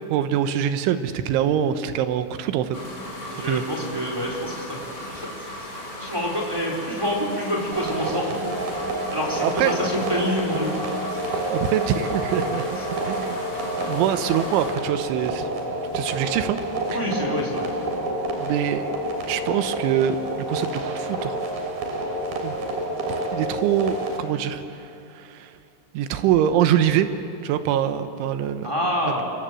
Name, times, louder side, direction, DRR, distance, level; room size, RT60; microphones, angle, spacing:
voice 1, 0.1-2.8 3.4-3.6 9.4-9.7 11.5-12.6 13.1-13.4 13.9-15.5 15.9-16.6 16.9-17.0 18.4-18.9 19.3-21.4 22.4-22.6 23.3-25.5 25.9-27.1 27.4-28.7, right 10 dB, 75° right, 10 dB, 3.3 m, -24 dB
sound 1, 2.7-14.7, equal, 20° left, 4.4 m, -36 dB
voice 2, 3.3-5.3 6.0-8.3 9.1-10.7 16.9-17.6 28.6-29.3, equal, 5° right, -2 dB, 3.4 m, -27 dB
sound 2, 7.7-24.2, right 1 dB, 50° right, 4.4 m, -29 dB
27.5 x 25.5 x 7.7 m, 2.6 s
omnidirectional pair, 5.7 m